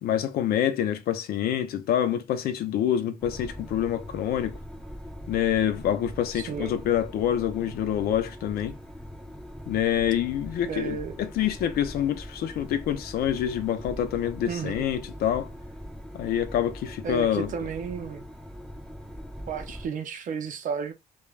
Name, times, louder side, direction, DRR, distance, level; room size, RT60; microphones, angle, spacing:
voice 1, 0.0-4.6 5.3-8.8 9.7-11.0 11.4-15.5 16.1-17.5, left 10 dB, 65° left, 0.5 m, -26 dB
sound 1, 3.2-19.9, equal, 5° left, 1.5 m, -41 dB
voice 2, 6.3-6.7 10.7-11.2 14.5-14.8 17.0-18.2 19.5-20.9, right 6 dB, 50° right, 0.6 m, -32 dB
3.1 x 2.2 x 2.3 m
cardioid pair, 110°, 17 cm